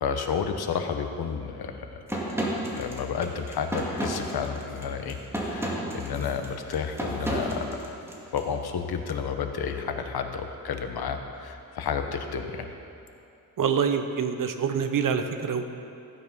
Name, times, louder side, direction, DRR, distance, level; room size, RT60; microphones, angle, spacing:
voice 1, 0.0-2.0 2.7-8.0 8.3-12.7, left 6 dB, 80° left, 6 dB, 1.2 m, -31 dB
sound 1, 2.1-8.4, right 1 dB, 5° right, 2.0 m, -32 dB
voice 2, 13.6-15.7, right 6 dB, 60° right, 7 dB, 1.0 m, -26 dB
15.5 x 9.6 x 5.5 m, 2.7 s
wide cardioid pair, 125°, 37 cm